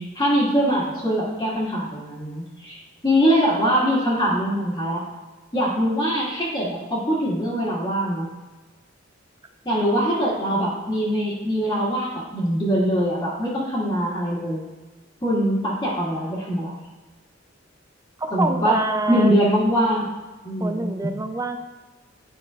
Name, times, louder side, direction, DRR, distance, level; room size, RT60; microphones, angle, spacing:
voice 1, 0.0-5.0 5.5-8.2 9.6-14.6 15.2-16.8 18.3-18.8 19.1-20.0 20.4-20.9, equal, 25° left, -11 dB, 1.8 m, -22 dB
voice 2, 18.2-19.3 20.6-21.6, right 2 dB, 15° right, 6 dB, 0.5 m, -26 dB
10.5 x 5.9 x 2.4 m, 1.2 s
head